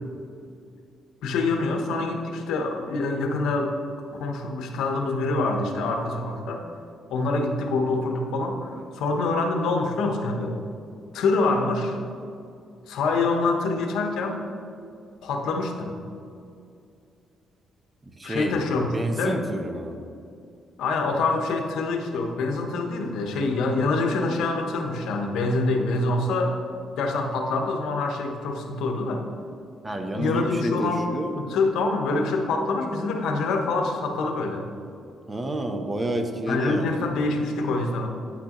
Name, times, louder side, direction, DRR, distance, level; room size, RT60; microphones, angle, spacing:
voice 1, 1.2-3.8 4.2-6.6 7.1-10.6 11.1-12.0 12.9-14.4 15.2-16.0 18.2-19.4 20.8-26.5 27.0-29.3 30.1-34.7 36.5-38.1, left 3 dB, 85° left, 3 dB, 0.9 m, -25 dB
voice 2, 18.2-18.6 18.9-20.0 29.8-31.3 35.3-37.0, right 1 dB, 20° right, 5 dB, 0.8 m, -29 dB
9.8 x 6.1 x 3.0 m, 2.4 s
cardioid pair, 90°, 0 cm